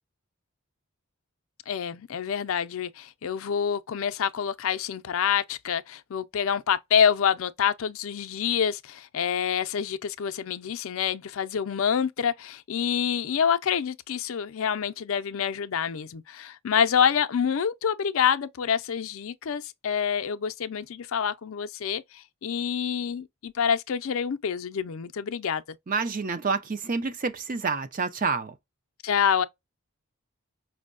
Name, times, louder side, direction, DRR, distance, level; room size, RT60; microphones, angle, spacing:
voice 1, 1.7-25.6 29.0-29.4, left 7 dB, 65° left, 0.4 m, -27 dB
voice 2, 25.9-28.5, right 4 dB, 35° right, 0.5 m, -28 dB
5.3 x 2.1 x 2.4 m
head